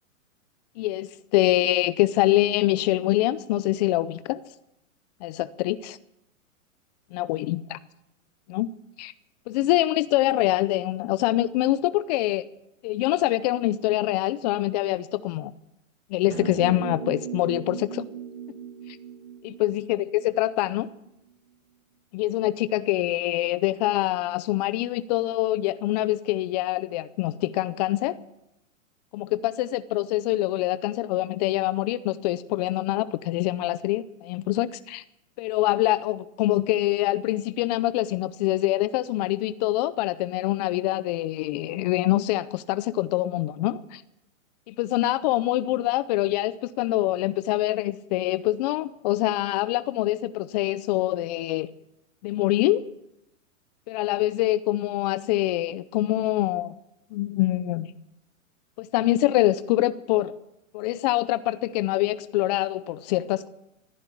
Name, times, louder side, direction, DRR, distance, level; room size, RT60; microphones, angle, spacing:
voice 1, 0.8-4.4 5.2-6.0 7.1-7.8 8.5-8.7 9.0-9.1 9.5-12.5 12.8-15.5 16.1-18.0 19.4-20.9 22.1-28.2 29.1-35.0 35.4-44.0 44.7-51.7 52.2-52.9 53.9-56.7 57.1-57.9 58.8-60.3 60.7-63.5, left 16 dB, 30° left, 0.5 m, -25 dB
sound 1, 16.3-20.8, right 8 dB, 55° right, 5.0 m, -37 dB
16.5 x 10.5 x 7.3 m
hypercardioid pair, 135°, 41 cm